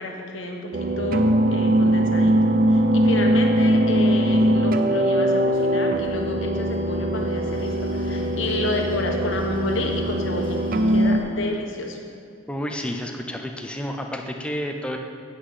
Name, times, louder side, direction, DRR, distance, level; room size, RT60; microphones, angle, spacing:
voice 1, 0.0-2.4 2.7-12.0, left 2 dB, 65° left, 2 dB, 1.2 m, -30 dB
sound 1, 0.7-11.2, right 1 dB, 45° right, 0.5 m, -21 dB
sound 2, 5.2-11.3, equal, 25° left, 1.4 m, -43 dB
voice 2, 12.5-15.0, equal, 5° left, 3 dB, 0.6 m, -30 dB
8.4 x 5.7 x 7.9 m, 2.3 s
head